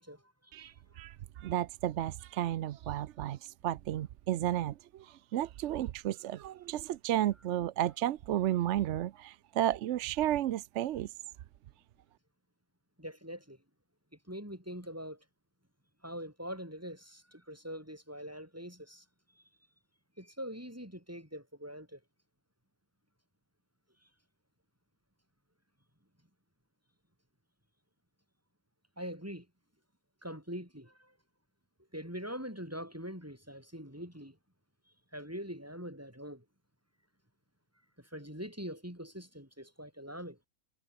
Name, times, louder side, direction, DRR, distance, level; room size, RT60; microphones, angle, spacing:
voice 1, 0.0-1.0 13.0-13.6 14.3-15.2 16.0-19.1 19.4-19.5 20.2-22.0 29.0-29.5 30.2-31.1 31.9-34.4 35.1-36.4 38.0-40.4, equal, 10° right, 6.9 m, -43 dB
voice 2, 0.5-11.1, right 12 dB, 65° right, 0.8 m, -33 dB
omnidirectional pair, 1.5 m